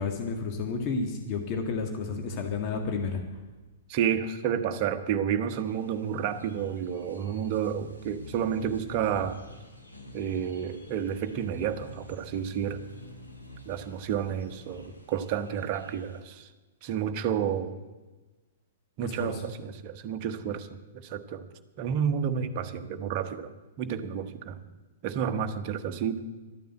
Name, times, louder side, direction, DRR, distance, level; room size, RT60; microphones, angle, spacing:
voice 1, 0.0-3.2 19.0-19.4, left 4 dB, 35° left, 3 dB, 1.7 m, -31 dB
voice 2, 3.9-9.4 10.1-12.8 13.6-16.5 16.8-17.7 19.0-20.7 20.9-21.4 21.8-23.5 23.8-24.6 25.0-26.2, right 8 dB, 40° right, 7 dB, 1.1 m, -30 dB
sound 1, 5.5-16.2, left 1 dB, 85° left, 3.3 m, -49 dB
13.0 x 9.3 x 7.8 m, 1.2 s
figure-of-eight pair, 110°, 0 cm